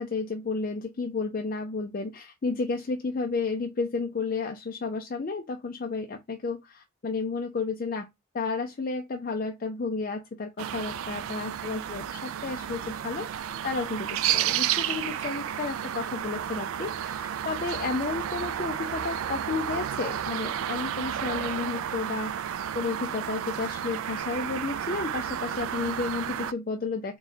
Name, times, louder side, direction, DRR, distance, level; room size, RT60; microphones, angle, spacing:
voice 1, 0.0-8.1 8.3-27.2, left 4 dB, 40° left, 0.4 m, -32 dB
sound 1, 10.6-26.5, right 10 dB, 75° right, 0.3 m, -32 dB
3.8 x 2.3 x 4.0 m
head